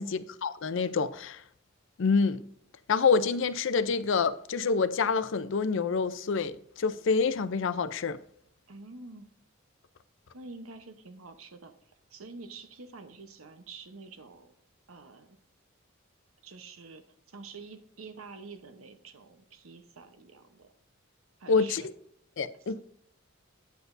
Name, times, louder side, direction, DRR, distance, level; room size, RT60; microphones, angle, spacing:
voice 1, 0.0-1.4 2.0-2.4 2.9-8.2 21.5-21.8 22.4-22.8, left 5 dB, 65° left, 0.5 m, -27 dB
voice 2, 8.7-9.3 10.3-11.7 12.1-14.5 14.9-15.4 16.4-20.7 21.4-21.9, right 3 dB, 90° right, 0.9 m, -47 dB
9.2 x 8.1 x 2.6 m
head